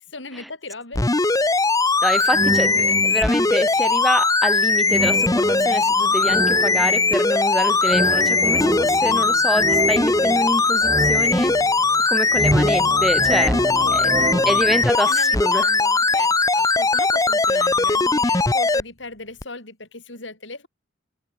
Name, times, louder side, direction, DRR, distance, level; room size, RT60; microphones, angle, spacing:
voice 1, 0.1-1.0 1.3-1.4 13.7-14.6 14.9-20.7, left 3 dB, 80° left, 6.8 m, -37 dB
sound 1, 0.9-18.8 19.4-19.5, left 3 dB, 20° left, 0.9 m, -19 dB
voice 2, 2.0-11.6 12.1-13.6 13.9-14.1 14.5-15.6, equal, ahead, 1.1 m, -26 dB
sound 2, 2.3-3.5 4.9-7.4 7.8-12.0 12.3-14.9, right 1 dB, 20° right, 4.7 m, -27 dB
head